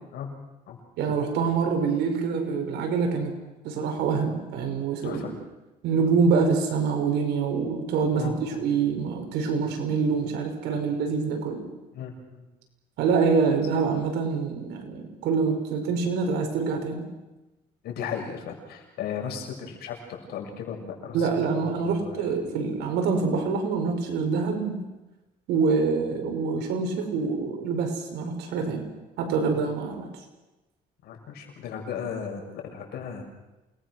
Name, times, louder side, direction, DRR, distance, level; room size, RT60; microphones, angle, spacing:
voice 1, 1.0-3.3 3.6-5.2 5.8-11.6 13.0-17.1 21.1-24.8 25.5-28.9 29.2-30.1, right 5 dB, 85° right, 4 dB, 5.3 m, -25 dB
voice 2, 8.1-8.6 11.9-12.5 17.8-22.3 29.5-29.6 31.0-33.2, left 7 dB, 70° left, 2 dB, 6.5 m, -36 dB
28.0 x 20.0 x 6.4 m, 1.1 s
cardioid pair, 110°, 17 cm